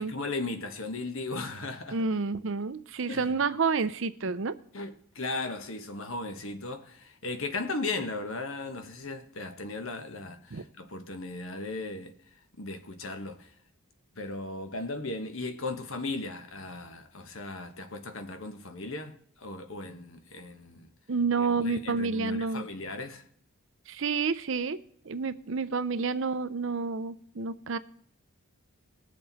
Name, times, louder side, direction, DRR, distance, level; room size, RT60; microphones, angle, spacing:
voice 1, 0.0-2.0 3.1-3.3 4.7-12.1 12.6-13.5 14.1-20.9 21.4-23.2, left 3 dB, 70° left, 1.4 m, -37 dB
voice 2, 1.9-4.5 10.5-10.6 21.1-22.7 23.9-24.8 25.0-27.8, right 4 dB, 60° right, 0.6 m, -29 dB
20.0 x 6.8 x 4.1 m
head